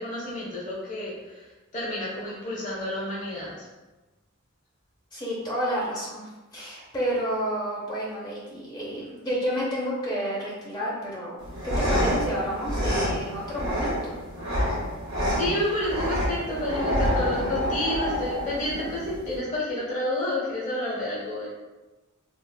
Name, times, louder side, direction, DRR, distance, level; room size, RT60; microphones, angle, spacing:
voice 1, 0.0-1.5 1.7-3.6 15.3-21.5, left 1 dB, 35° left, -7 dB, 1.1 m, -30 dB
voice 2, 5.1-14.1, equal, 20° left, -5 dB, 0.6 m, -30 dB
sound 1, 11.4-19.4, equal, 50° right, 0.9 m, -28 dB
3.5 x 2.4 x 2.3 m, 1.1 s
head